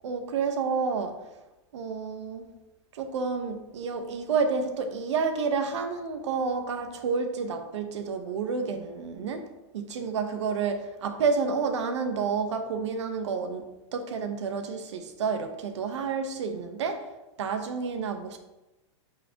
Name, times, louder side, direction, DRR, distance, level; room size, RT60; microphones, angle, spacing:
voice 1, 0.0-1.4 1.7-2.5 2.9-18.4, right 5 dB, 75° right, 6 dB, 1.0 m, -30 dB
8.5 x 4.9 x 2.9 m, 1.0 s
supercardioid pair, 175°, 15 cm